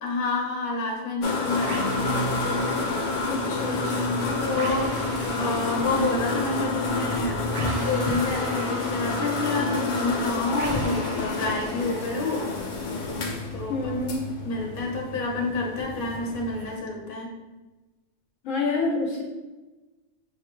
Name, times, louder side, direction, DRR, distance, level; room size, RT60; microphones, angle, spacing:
voice 1, 0.0-2.2 4.4-4.9 5.2-7.4 7.8-12.5 13.5-13.9 14.4-17.3, left 3 dB, 45° left, -1 dB, 0.9 m, -29 dB
sound 1, 1.2-16.8, left 3 dB, 90° left, 0.4 m, -28 dB
sound 2, 1.6-13.6, right 2 dB, 55° right, 0.6 m, -42 dB
voice 2, 3.3-4.3 13.7-14.3 18.4-19.2, left 3 dB, 75° left, 0 dB, 0.9 m, -28 dB
5.9 x 2.3 x 2.9 m, 1.2 s
omnidirectional pair, 1.4 m